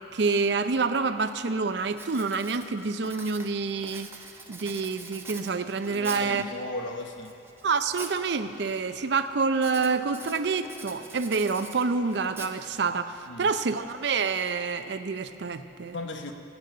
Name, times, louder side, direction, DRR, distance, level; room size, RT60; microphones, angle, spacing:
voice 1, 0.1-4.1 4.5-6.4 7.6-16.0, right 4 dB, 65° right, 10 dB, 0.5 m, -27 dB
Writing, 0.7-0.8 1.3-1.5 1.9-6.4 7.0-8.2 8.5-9.0 9.5-13.0, right 3 dB, 15° right, 0.7 m, -44 dB
voice 2, 5.9-7.3 13.3-13.5 15.9-16.3, left 2 dB, 75° left, 5 dB, 1.0 m, -36 dB
23.5 x 8.3 x 3.9 m, 3.0 s
head